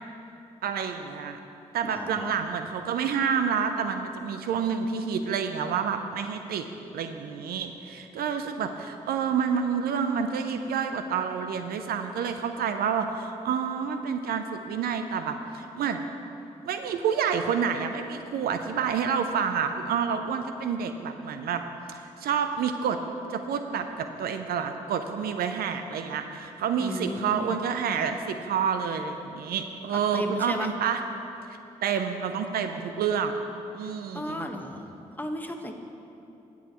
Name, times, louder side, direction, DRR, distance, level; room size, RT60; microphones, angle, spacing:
voice 1, 0.6-1.4 1.7-6.7 6.9-16.0 16.6-21.6 21.9-23.0 23.3-31.0 31.8-33.4 33.7-34.5, right 7 dB, 75° right, 7 dB, 0.5 m, -28 dB
voice 2, 1.8-2.3 26.8-27.6 29.9-30.7 33.8-34.9 35.1-35.7, left 1 dB, 10° left, 3 dB, 1.3 m, -35 dB
18.0 x 7.1 x 3.0 m, 2.8 s
supercardioid pair, 45°, 16 cm